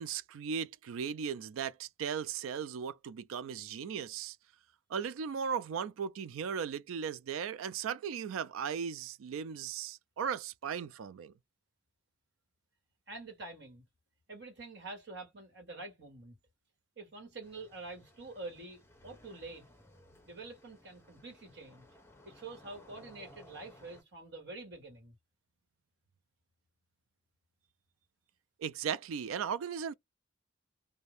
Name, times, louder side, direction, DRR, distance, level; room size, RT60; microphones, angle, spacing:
voice 1, 0.0-4.4 4.9-11.3 28.6-29.9, right 7 dB, 85° right, 0.3 m, -37 dB
voice 2, 13.1-13.8 14.3-16.3 17.0-19.7 20.3-21.9 22.2-25.1, right 3 dB, 55° right, 1.4 m, -47 dB
sound 1, 17.4-24.0, left 1 dB, 10° left, 0.6 m, -59 dB
2.5 x 2.2 x 3.2 m
head